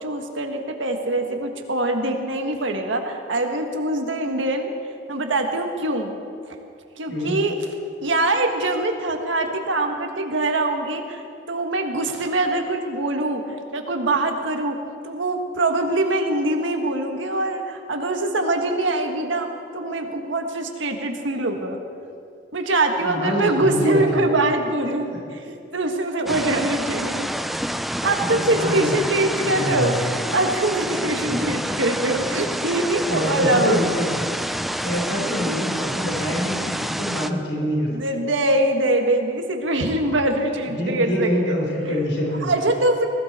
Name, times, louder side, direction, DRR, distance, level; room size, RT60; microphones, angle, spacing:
voice 1, 0.0-4.7 5.1-6.1 7.0-7.6 8.0-13.4 13.7-14.8 15.0-21.8 22.5-27.3 28.0-33.8 37.9-41.3 41.8-42.0 42.4-43.1, right 2 dB, 90° right, 4 dB, 1.6 m, -23 dB
voice 2, 23.0-24.3 28.2-30.1 33.1-34.1 34.8-38.2 40.6-42.5, equal, 75° left, -2 dB, 4.2 m, -25 dB
sound 1, 26.3-37.3, equal, ahead, 0.3 m, -28 dB
20.5 x 16.0 x 4.4 m, 2.5 s
head